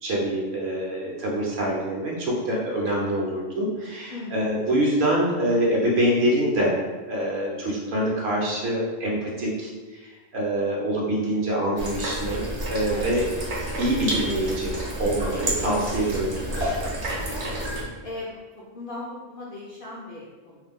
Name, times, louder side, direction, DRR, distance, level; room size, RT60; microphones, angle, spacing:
voice 1, 0.0-6.8 7.1-13.2 13.8-16.9, right 1 dB, 60° right, -3 dB, 0.9 m, -25 dB
voice 2, 4.1-4.5 12.9-13.1 17.3-17.6 18.0-20.6, left 2 dB, 60° left, -6 dB, 0.5 m, -38 dB
sound 1, 11.8-17.8, right 1 dB, 45° right, 0.6 m, -30 dB
2.5 x 2.1 x 3.5 m, 1.3 s
omnidirectional pair, 1.3 m